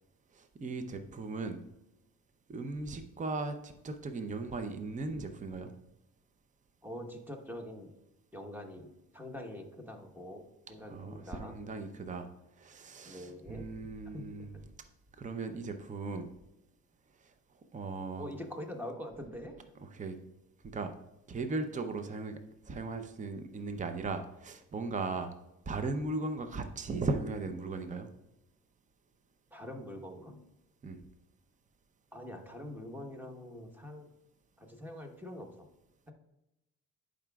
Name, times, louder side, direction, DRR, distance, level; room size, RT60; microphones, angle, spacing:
voice 1, 0.3-1.6 2.5-5.7 10.9-12.3 12.6-14.6 15.2-16.3 17.7-18.3 19.8-20.2 20.7-20.9 21.3-22.4 22.6-25.3 25.7-28.1 30.8-31.0, right 3 dB, 25° right, 8 dB, 0.6 m, -37 dB
voice 2, 6.8-7.9 8.3-10.4 10.7-11.5 13.0-13.7 14.1-14.7 18.2-19.6 29.5-30.4 32.1-34.1 34.6-35.5, left 1 dB, 5° right, 3 dB, 1.1 m, -44 dB
10.5 x 5.0 x 2.3 m, 0.89 s
cardioid pair, 90°, 30 cm